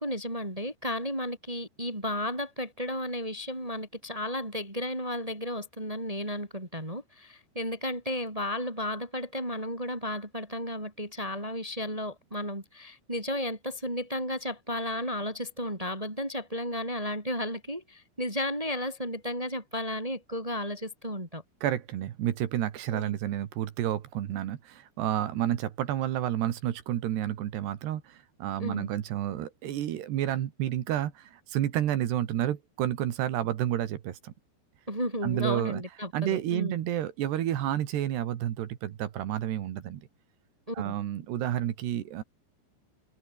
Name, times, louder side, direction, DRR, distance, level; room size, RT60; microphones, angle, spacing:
voice 1, 0.0-21.4 22.9-23.1 28.6-28.9 34.9-36.7 40.7-40.9, left 1 dB, 10° right, 5.0 m, -33 dB
voice 2, 21.6-34.3 35.2-35.8 36.1-40.0 40.8-42.2, right 11 dB, 75° right, 3.8 m, -30 dB
omnidirectional pair, 4.9 m